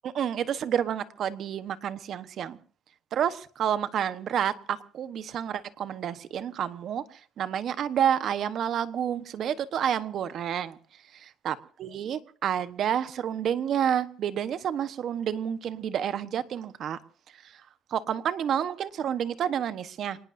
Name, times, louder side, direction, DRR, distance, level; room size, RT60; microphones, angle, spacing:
voice 1, 0.0-2.6 3.1-7.0 7.4-10.8 11.4-17.0 17.9-20.2, right 9 dB, 55° right, 13 dB, 1.1 m, -29 dB
27.0 x 19.0 x 2.7 m, 0.42 s
cardioid pair, 130°, 0 cm